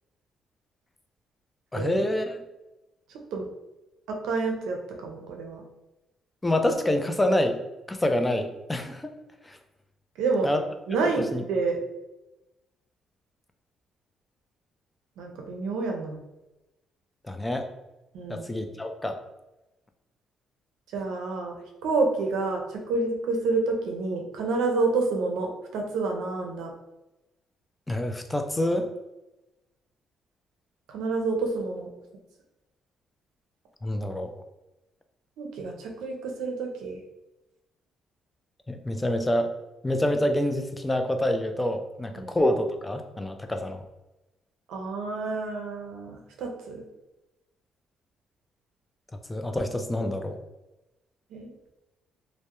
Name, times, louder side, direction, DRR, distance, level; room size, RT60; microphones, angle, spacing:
voice 1, 1.7-2.4 6.4-7.6 7.9-9.1 9.4-9.6 10.4-10.6 11.2-11.4 17.3-17.7 18.3-19.2 27.9-28.9 33.8-34.3 38.7-39.5 39.8-43.8 49.3-50.4, left 1 dB, 15° left, 6 dB, 0.3 m, -27 dB
voice 2, 4.1-5.6 10.2-10.5 10.9-11.2 11.5-11.8 15.2-16.2 18.1-18.5 20.9-21.5 21.8-26.7 30.9-31.9 35.4-37.0 42.2-42.3 44.7-46.8 51.3-51.5, right 3 dB, 90° right, 2 dB, 0.5 m, -28 dB
2.2 x 2.0 x 2.9 m, 1.0 s
cardioid pair, 90°, 0 cm